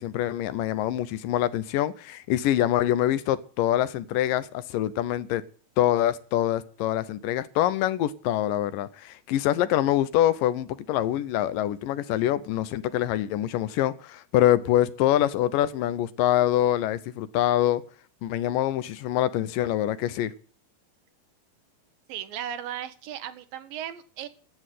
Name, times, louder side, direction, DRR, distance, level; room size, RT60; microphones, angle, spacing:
voice 1, 0.0-5.4 5.8-17.8 18.2-20.3, left 12 dB, 75° left, 2.3 m, -25 dB
voice 2, 22.1-24.3, right 10 dB, 75° right, 2.7 m, -36 dB
12.0 x 8.4 x 9.2 m
omnidirectional pair, 4.1 m